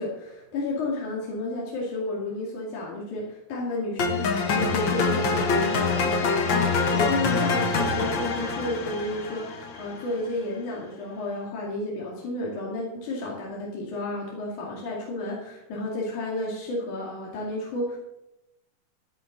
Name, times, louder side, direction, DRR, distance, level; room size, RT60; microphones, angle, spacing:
voice 1, 0.0-18.0, left 2 dB, 60° left, -4 dB, 3.7 m, -32 dB
sound 1, 4.0-10.1, left 4 dB, 75° left, 1.0 m, -25 dB
14.0 x 10.5 x 3.9 m, 0.88 s
omnidirectional pair, 4.1 m